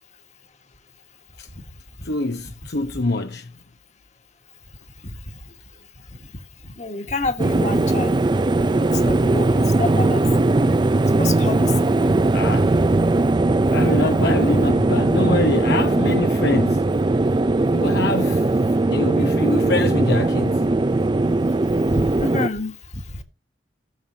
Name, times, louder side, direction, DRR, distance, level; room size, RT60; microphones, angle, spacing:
voice 1, 2.0-3.5 12.3-12.7 13.7-16.8 17.7-20.7, left 2 dB, 65° left, 0.9 m, -25 dB
voice 2, 6.8-8.3 8.9-10.2 11.2-11.7 12.0-12.2 21.9-23.0, left 3 dB, 40° left, 1.7 m, -28 dB
sound 1, 7.4-22.5, right 2 dB, 25° right, 0.5 m, -19 dB
18.0 x 7.5 x 2.8 m
head